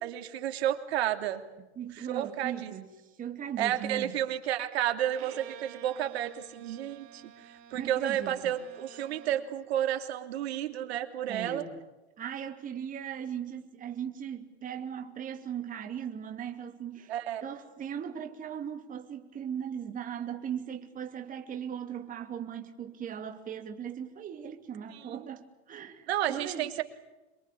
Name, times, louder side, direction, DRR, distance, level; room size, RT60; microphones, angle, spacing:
voice 1, 0.0-1.4 2.0-2.7 3.6-11.6 17.1-17.4 24.9-25.1 26.1-26.8, right 11 dB, 70° right, 3.1 m, -31 dB
voice 2, 1.8-4.2 7.7-8.5 11.3-11.8 12.2-17.1 17.4-26.7, right 8 dB, 25° right, 2.7 m, -38 dB
Bowed string instrument, 5.1-9.6, right 10 dB, 45° right, 4.0 m, -51 dB
27.5 x 23.0 x 8.5 m
supercardioid pair, 130°, 33 cm